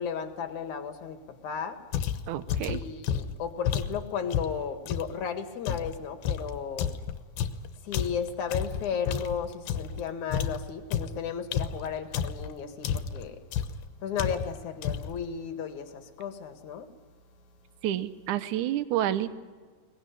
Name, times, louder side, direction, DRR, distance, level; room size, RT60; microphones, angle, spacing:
voice 1, 0.0-1.8 2.6-6.9 7.8-13.4 14.0-16.9, left 7 dB, 55° left, 7 dB, 2.8 m, -34 dB
sound 1, 1.9-5.2 5.7-10.0 10.3-12.5 12.8-13.3 13.5-13.9 14.2-14.6 14.8-15.2, left 8 dB, 75° left, 2.8 m, -31 dB
voice 2, 2.3-2.8 17.8-19.3, right 12 dB, 70° right, 13 dB, 1.9 m, -29 dB
22.5 x 20.0 x 10.0 m, 1.5 s
omnidirectional pair, 4.5 m